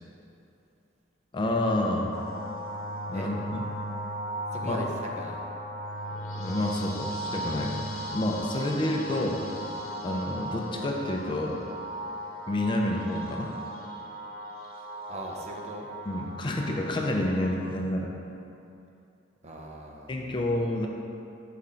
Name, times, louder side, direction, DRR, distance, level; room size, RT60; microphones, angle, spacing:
voice 1, 1.3-2.1 3.1-3.6 4.6-4.8 6.1-9.4 10.0-11.6 12.5-13.5 16.1-18.1 20.1-20.9, left 1 dB, 25° left, 1 dB, 0.4 m, -29 dB
sound 1, 2.1-17.7, equal, 85° left, 0.8 m, -37 dB
voice 2, 4.5-5.4 15.1-15.9 19.4-20.3, right 1 dB, 35° right, 0 dB, 0.6 m, -39 dB
5.0 x 3.6 x 5.6 m, 2.7 s
head